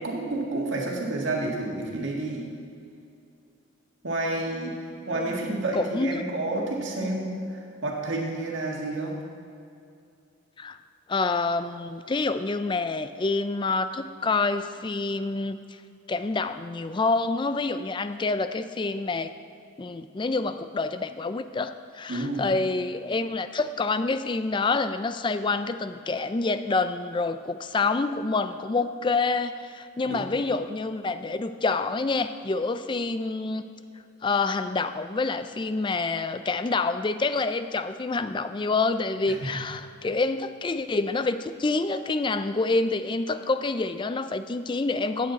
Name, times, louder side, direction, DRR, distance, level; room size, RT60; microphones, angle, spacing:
voice 1, 0.0-2.5 4.0-4.8 5.1-7.3 7.8-9.2 22.1-22.5 30.0-30.3 39.3-39.4, right 2 dB, 65° right, -1 dB, 1.9 m, -29 dB
voice 2, 5.1-6.2 7.0-7.1 10.6-10.8 11.1-15.6 16.1-19.3 19.8-33.6 34.2-45.3, left 3 dB, 25° left, 11 dB, 0.4 m, -27 dB
15.0 x 9.2 x 4.1 m, 2.5 s
head